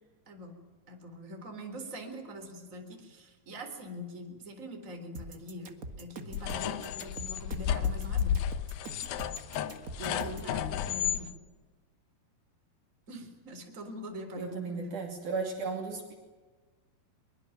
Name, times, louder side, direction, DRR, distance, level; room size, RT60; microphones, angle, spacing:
voice 1, 0.3-0.6 0.9-8.4 10.0-11.3 13.1-15.0, equal, 20° right, 5 dB, 4.0 m, -43 dB
sound 1, 5.1-10.5, right 2 dB, 40° right, 1.3 m, -43 dB
sound 2, 6.3-11.2, left 9 dB, 75° left, 2.9 m, -32 dB
voice 2, 14.4-16.2, right 4 dB, 55° right, 2 dB, 4.1 m, -35 dB
23.5 x 23.0 x 9.2 m, 1.3 s
omnidirectional pair, 4.5 m